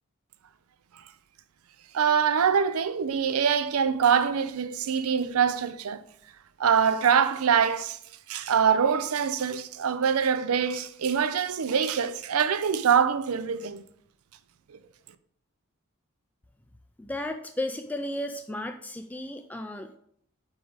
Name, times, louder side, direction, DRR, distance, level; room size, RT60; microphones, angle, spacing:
voice 1, 1.9-6.0 6.6-8.0 8.3-13.8, right 7 dB, 85° right, 0.5 m, -24 dB
voice 2, 17.0-20.0, left 1 dB, 5° left, 0.3 m, -34 dB
5.0 x 5.0 x 5.0 m
head